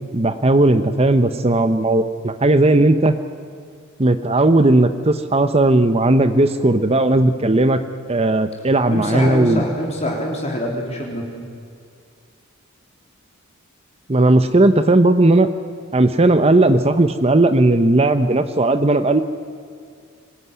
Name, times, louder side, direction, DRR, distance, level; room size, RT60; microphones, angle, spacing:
voice 1, 0.1-3.1 4.0-7.8 8.1-9.6 14.1-15.5 15.9-19.2, right 2 dB, 30° right, 10 dB, 0.9 m, -16 dB
voice 2, 8.9-11.3, equal, 30° left, -1 dB, 3.7 m, -24 dB
24.5 x 19.5 x 9.7 m, 2.3 s
head